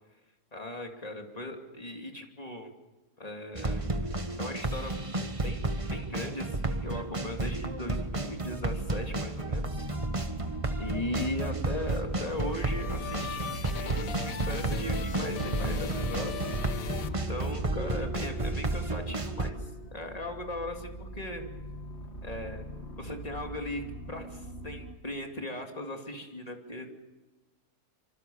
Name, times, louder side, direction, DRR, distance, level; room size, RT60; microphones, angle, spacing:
voice 1, 0.5-2.7 3.2-4.1 4.4-5.0 5.4-9.9 10.8-16.3 17.1-21.4 22.2-22.6 23.0-26.9, left 1 dB, 25° left, 3 dB, 2.8 m, -38 dB
sound 1, 3.5-19.5, right 2 dB, 25° right, 1.4 m, -32 dB
sound 2, 8.3-25.0, equal, 50° left, 2.4 m, -43 dB
sound 3, 12.2-17.8, left 8 dB, 65° left, 1.5 m, -39 dB
26.0 x 25.5 x 7.2 m, 1.1 s
omnidirectional pair, 1.6 m